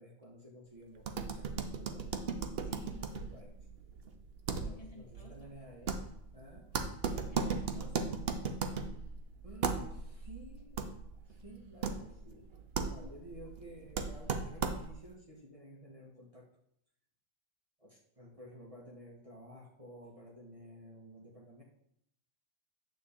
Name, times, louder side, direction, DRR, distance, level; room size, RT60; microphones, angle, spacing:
voice 1, 0.0-2.3 2.6-3.6 4.6-6.0 6.3-6.8 9.4-10.9 11.3-16.5 17.8-21.6, equal, 30° right, -3 dB, 1.5 m, -53 dB
sound 1, 1.0-15.1, right 5 dB, 65° right, 1.0 m, -38 dB
voice 2, 2.6-3.1 4.6-5.5 7.1-8.1 12.8-13.2, left 1 dB, 35° left, -2 dB, 1.9 m, -51 dB
9.2 x 3.7 x 7.0 m, 0.74 s
omnidirectional pair, 1.1 m